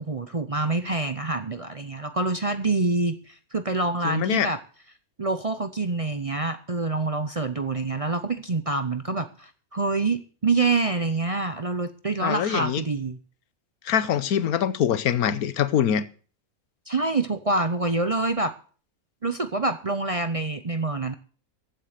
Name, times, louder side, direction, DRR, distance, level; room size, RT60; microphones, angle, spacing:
voice 1, 0.0-4.6 5.2-13.2 16.9-18.5 19.2-21.1, right 3 dB, 35° right, 0.6 m, -26 dB
voice 2, 4.0-4.5 12.2-12.8 13.8-16.0, left 9 dB, 90° left, 1.4 m, -24 dB
15.0 x 7.8 x 6.7 m
omnidirectional pair, 1.5 m